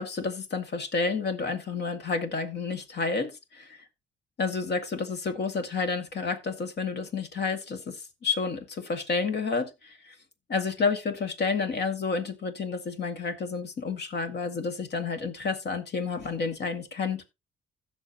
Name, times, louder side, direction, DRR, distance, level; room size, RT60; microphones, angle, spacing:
voice 1, 0.0-3.8 4.4-10.1 10.5-17.2, left 4 dB, 55° left, 2.1 m, -30 dB
16.0 x 6.6 x 2.9 m
cardioid pair, 90°, 20 cm